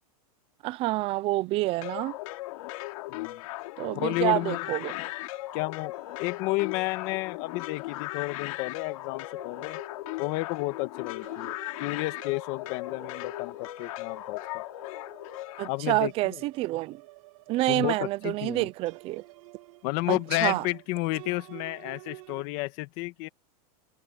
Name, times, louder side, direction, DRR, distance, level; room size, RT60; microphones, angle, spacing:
voice 1, 0.6-2.2 3.8-4.9 15.6-17.0 17.5-19.2 20.1-20.6, right 18 dB, 30° right, 0.6 m, -28 dB
sound 1, 1.8-15.7, left 19 dB, 60° left, 3.1 m, -37 dB
voice 2, 3.1-3.4 3.9-5.1 5.5-9.8 10.2-14.6 15.7-16.4 17.7-18.7 19.8-23.3, left 21 dB, 45° left, 1.6 m, -32 dB
sound 2, 4.9-22.4, right 22 dB, 60° right, 2.2 m, -52 dB
supercardioid pair, 160°, 20 cm